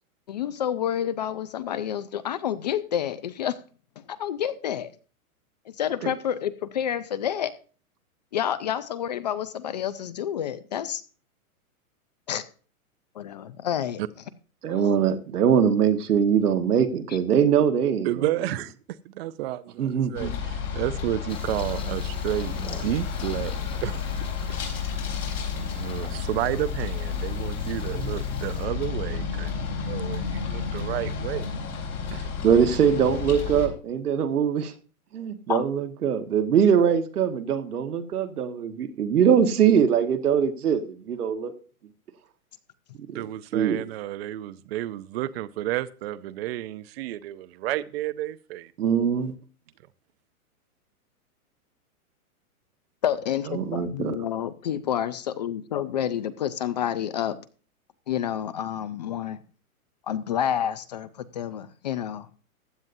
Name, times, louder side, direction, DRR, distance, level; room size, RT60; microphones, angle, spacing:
voice 1, 0.3-3.6 4.0-4.9 5.7-7.5 8.3-11.0 12.3-12.4 13.1-14.0 14.7-14.9 35.5-35.6 53.0-57.4 58.1-59.4 60.1-62.3, left 10 dB, 30° left, 0.4 m, -29 dB
voice 2, 14.6-18.2 19.8-20.3 32.4-34.7 35.1-41.5 43.0-43.3 43.5-43.8 48.8-49.3 53.5-54.2, right 8 dB, 90° right, 1.5 m, -22 dB
voice 3, 18.0-18.7 19.1-23.5 23.8-23.9 24.5-24.8 25.6-31.5 32.1-32.3 43.1-48.7, right 14 dB, 45° right, 0.5 m, -31 dB
sound 1, 20.1-33.7, left 6 dB, 90° left, 4.0 m, -31 dB
sound 2, 21.3-28.7, left 2 dB, 10° left, 1.3 m, -44 dB
15.0 x 9.5 x 2.6 m
hypercardioid pair, 145°, 44 cm